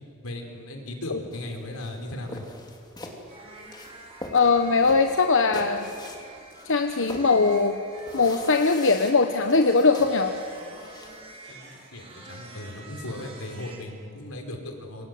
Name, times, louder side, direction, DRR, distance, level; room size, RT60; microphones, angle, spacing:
voice 1, 0.2-2.4 11.5-15.1, left 1 dB, 85° left, 3 dB, 4.8 m, -37 dB
sound 1, 1.3-11.3, left 1 dB, 20° left, 3.3 m, -43 dB
sound 2, 3.3-13.8, right 2 dB, 30° right, 4.6 m, -47 dB
voice 2, 4.3-5.9 6.6-7.8 8.1-10.3, left 4 dB, 65° left, 6 dB, 1.2 m, -21 dB
29.0 x 25.5 x 8.0 m, 2.4 s
head